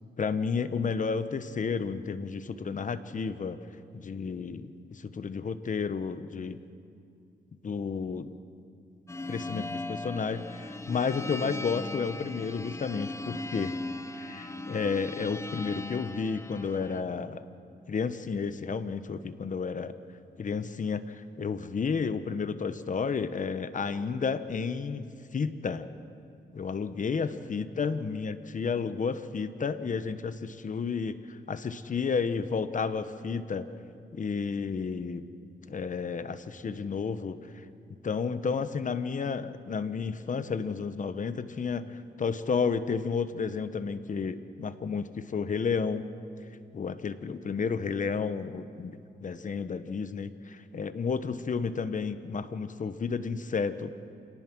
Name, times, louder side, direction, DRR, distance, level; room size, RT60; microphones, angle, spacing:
voice 1, 0.2-3.6 3.9-6.6 7.6-8.3 9.3-13.7 14.2-17.4 17.9-19.9 20.4-25.1 25.3-25.9 26.5-33.7 34.1-35.2 35.7-37.4 38.0-46.1 46.7-53.9, left 5 dB, 45° left, 12 dB, 1.1 m, -32 dB
sound 1, 9.1-17.0, left 2 dB, 15° left, 0.8 m, -38 dB
27.5 x 18.5 x 6.2 m, 2.4 s
cardioid pair, 90°, 18 cm